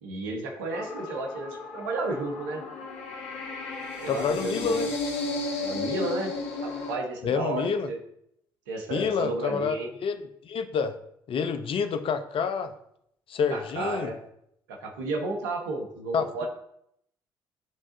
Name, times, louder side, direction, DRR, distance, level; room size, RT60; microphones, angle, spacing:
voice 1, 0.0-2.6 4.0-4.8 5.6-6.3 6.6-8.0 8.7-9.9 13.5-14.2 14.7-16.5, right 2 dB, 90° right, 2 dB, 1.0 m, -32 dB
sound 1, 0.7-7.0, left 3 dB, 75° left, 1.0 m, -34 dB
voice 2, 4.1-4.9 7.2-7.9 8.9-9.7 10.0-10.2 10.4-10.9 11.3-12.7 13.3-14.1 16.1-16.5, left 6 dB, 55° left, 9 dB, 0.7 m, -28 dB
10.5 x 3.6 x 2.6 m, 0.74 s
hypercardioid pair, 50°, 11 cm